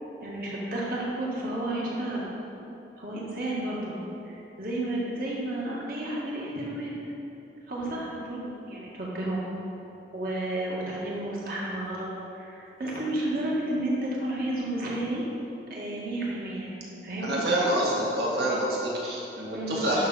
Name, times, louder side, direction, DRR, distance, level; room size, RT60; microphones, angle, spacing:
voice 1, 0.2-2.3 3.0-4.0 4.3-6.9 7.7-9.4 10.1-12.1 12.4-15.2 15.7-16.7 17.0-17.4 19.5-20.1, right 1 dB, 55° right, -5 dB, 1.8 m, -32 dB
voice 2, 17.2-20.1, right 1 dB, 70° right, -4 dB, 2.0 m, -27 dB
11.5 x 6.1 x 4.3 m, 3.0 s
head